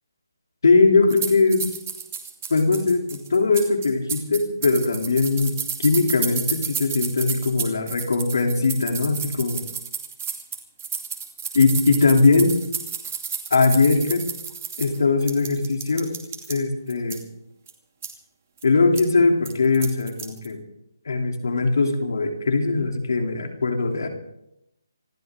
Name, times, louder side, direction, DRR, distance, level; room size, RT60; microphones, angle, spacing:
voice 1, 0.6-1.7 2.5-3.0 3.3-9.6 11.5-12.5 13.5-14.2 14.8-16.1 16.5-17.2 18.6-20.6 21.0-24.1, left 3 dB, 60° left, 3 dB, 3.3 m, -20 dB
sound 1, 1.1-16.6 16.9-17.2 17.7-17.8 18.0-18.1 18.6-18.7 19.0-19.1 19.5-20.5, right 7 dB, 35° right, 2.5 m, -31 dB
27.0 x 12.5 x 3.8 m, 0.82 s
hypercardioid pair, 165°, 2 cm